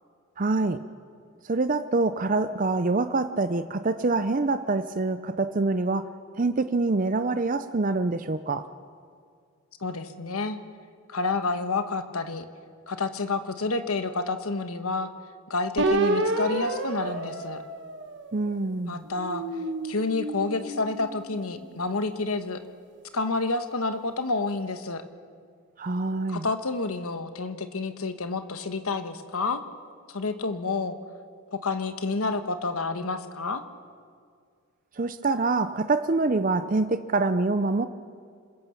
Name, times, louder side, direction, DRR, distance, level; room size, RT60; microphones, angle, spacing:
voice 1, 0.4-0.8 1.4-6.1 6.4-8.7 18.3-19.0 25.8-26.5 35.0-37.9, right 3 dB, 35° right, 10 dB, 0.5 m, -25 dB
voice 2, 9.8-10.6 11.1-12.4 12.9-15.1 15.5-17.6 18.9-19.4 19.8-22.6 23.1-25.0 26.3-29.6 30.1-31.0 31.5-33.6, left 3 dB, 80° left, 9 dB, 1.2 m, -29 dB
sound 1, 15.8-18.5 19.0-21.5, right 2 dB, 55° right, 1.4 m, -29 dB
26.5 x 16.0 x 7.0 m, 2.2 s
head